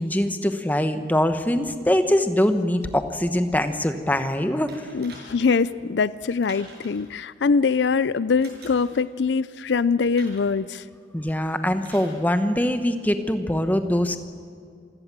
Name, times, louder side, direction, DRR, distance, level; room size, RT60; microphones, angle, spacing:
voice 1, 0.0-4.9 11.1-14.2, left 1 dB, 10° left, 8 dB, 1.1 m, -23 dB
sound 1, 4.7-5.7 6.4-7.1 8.4-9.0 10.2-10.6 11.8-12.2 13.2-13.3, right 3 dB, 60° right, 6.6 m, -46 dB
voice 2, 4.9-10.8, left 5 dB, 75° left, 17 dB, 0.5 m, -23 dB
27.0 x 16.5 x 7.5 m, 2.3 s
head